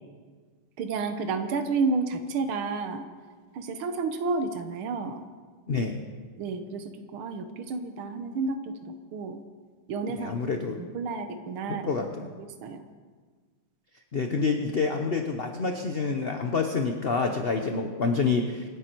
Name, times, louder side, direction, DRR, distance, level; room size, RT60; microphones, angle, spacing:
voice 1, 0.8-3.1 3.5-5.3 6.4-6.8 7.1-9.4 9.9-10.5 10.8-11.9 12.4-12.9, right 4 dB, 80° right, 7 dB, 1.9 m, -31 dB
voice 2, 10.2-10.8 11.7-12.3 14.1-18.8, left 4 dB, 50° left, 4 dB, 0.7 m, -27 dB
27.5 x 9.8 x 4.6 m, 1.5 s
omnidirectional pair, 2.3 m